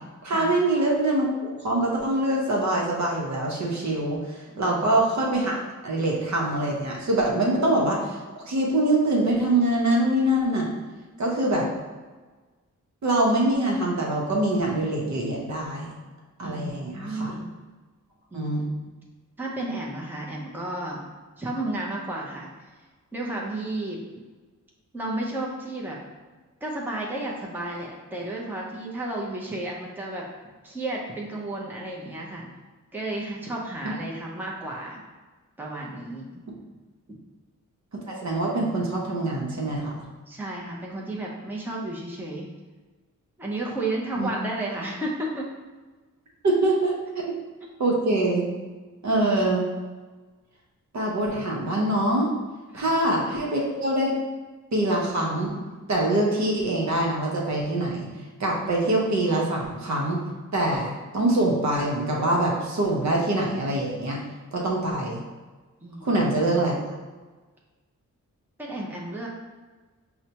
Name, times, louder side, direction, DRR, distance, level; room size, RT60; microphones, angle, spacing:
voice 1, 0.2-8.2 8.5-10.7 11.2-11.7 13.0-15.9 16.4-17.3 18.3-18.7 37.9-40.1 44.2-44.3 46.4-47.0 47.2-47.3 47.8-48.5 49.0-49.7 50.9-52.3 52.7-54.1 54.7-55.6 55.9-58.1 58.4-60.2 60.5-64.2 64.5-65.2 66.0-66.8, right 1 dB, 60° right, -2 dB, 0.8 m, -24 dB
voice 2, 4.5-4.9 11.5-11.7 16.4-17.5 18.3-18.5 19.4-21.0 21.4-22.5 23.1-24.0 24.9-26.0 26.6-30.2 30.6-32.5 32.9-35.0 35.6-36.3 37.1-37.2 40.3-42.5 43.4-45.5 52.7-52.9 65.8-66.3 68.6-69.3, right 2 dB, 5° right, -3 dB, 0.7 m, -32 dB
4.8 x 2.2 x 2.8 m, 1.3 s
cardioid pair, 80°, 31 cm